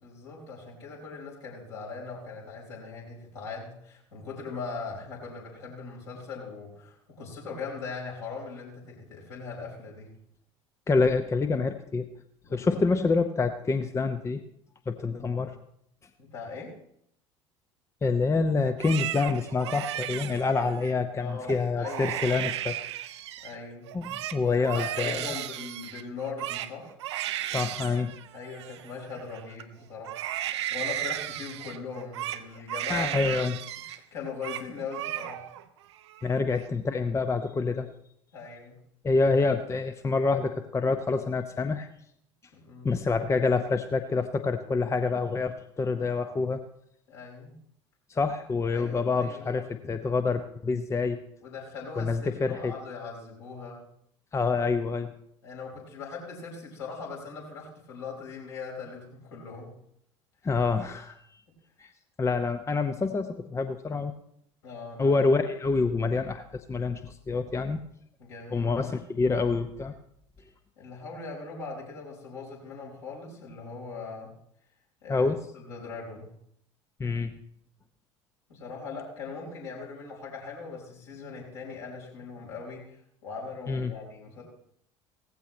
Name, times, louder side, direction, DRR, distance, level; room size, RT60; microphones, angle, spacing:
voice 1, 0.0-10.1 12.4-12.7 16.2-16.7 21.2-22.4 23.4-23.9 24.5-26.9 28.3-30.4 30.7-33.6 33.8-35.5 38.3-38.8 42.5-42.9 47.1-47.5 48.7-49.6 51.4-53.8 55.4-59.7 64.6-65.2 68.2-68.7 70.4-70.5 70.8-74.3 75.0-75.3 75.5-76.3 78.5-84.4, left 4 dB, 65° left, -3 dB, 4.8 m, -40 dB
voice 2, 10.9-12.1 12.5-14.4 14.9-15.5 18.0-23.0 23.9-24.0 24.3-25.4 27.5-28.1 32.9-33.6 36.2-37.9 39.0-41.9 42.8-46.6 48.1-51.2 52.0-52.7 54.3-55.1 60.4-61.2 61.8-61.9 62.2-64.1 65.0-67.8 68.5-69.9 75.1-75.4 77.0-77.4 83.7-83.9, left 4 dB, 20° left, 9 dB, 0.7 m, -27 dB
Crying sobbing, 18.7-20.9 21.4-21.6 21.8-23.6 23.9-29.6 30.0-34.0 34.3-34.7 34.9-35.6 36.0-36.6, right 13 dB, 65° right, 0.6 m, -35 dB
17.0 x 15.0 x 3.1 m, 0.71 s
figure-of-eight pair, 65°, 15 cm